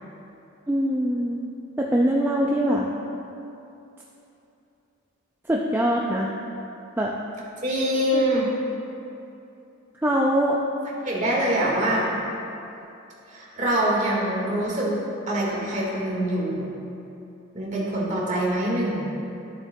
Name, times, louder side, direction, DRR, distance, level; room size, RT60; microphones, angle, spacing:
voice 1, 0.7-1.4 1.8-2.9 5.5-6.3 7.0-7.1 8.1-8.2 10.0-10.6, equal, 10° right, -3 dB, 0.4 m, -22 dB
voice 2, 7.6-8.5 11.0-12.1 13.3-14.9 15.3-16.7 17.5-19.0, right 1 dB, 35° right, -5 dB, 1.8 m, -24 dB
12.5 x 7.2 x 2.3 m, 2.9 s
head